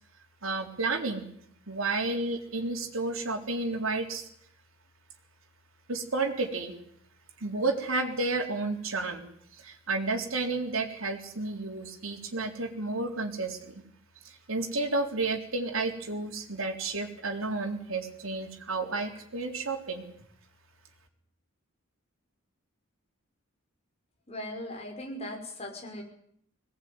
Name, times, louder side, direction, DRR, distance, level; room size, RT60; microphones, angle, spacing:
voice 1, 0.4-1.3 1.7-4.3 5.9-6.7 7.4-9.3 9.6-13.8 14.2-20.0, right 3 dB, 70° right, 3 dB, 3.8 m, -31 dB
voice 2, 24.3-26.0, left 1 dB, 30° left, 2 dB, 5.8 m, -38 dB
21.5 x 18.5 x 9.6 m, 0.65 s
head